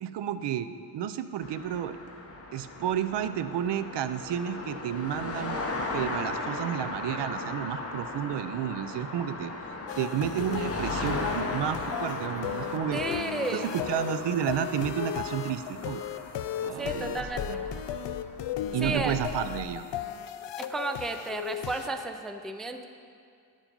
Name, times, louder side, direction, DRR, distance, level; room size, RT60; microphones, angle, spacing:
voice 1, 0.0-2.0 2.5-5.6 5.9-9.5 10.0-13.0 13.5-16.0 16.6-17.6 18.7-19.9, right 10 dB, 75° right, 12 dB, 0.6 m, -31 dB
sound 1, 1.4-19.6, left 2 dB, 35° left, 1.0 m, -37 dB
sound 2, 9.9-21.9, left 10 dB, 80° left, 0.5 m, -36 dB
voice 2, 12.9-13.7 16.7-17.6 18.8-19.2 20.6-22.9, right 2 dB, ahead, 7 dB, 0.3 m, -33 dB
10.0 x 7.3 x 5.2 m, 2.3 s
wide cardioid pair, 135°, 42 cm